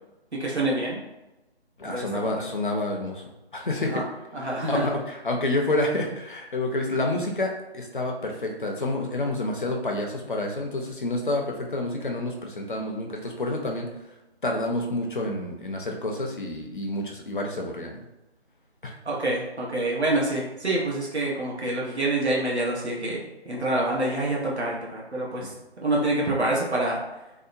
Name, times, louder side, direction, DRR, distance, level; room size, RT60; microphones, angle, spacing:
voice 1, 0.4-1.0 1.8-2.3 3.8-4.0 4.3-4.9 19.0-23.2 23.5-25.5 25.8-27.0, right 2 dB, 90° right, -4 dB, 1.0 m, -26 dB
voice 2, 1.8-3.2 3.5-4.0 4.4-13.9 14.4-18.1 18.8-18.9 25.4-25.5, left 2 dB, 50° left, 1 dB, 0.5 m, -29 dB
2.8 x 2.0 x 2.5 m, 0.98 s
figure-of-eight pair, 160°, 32 cm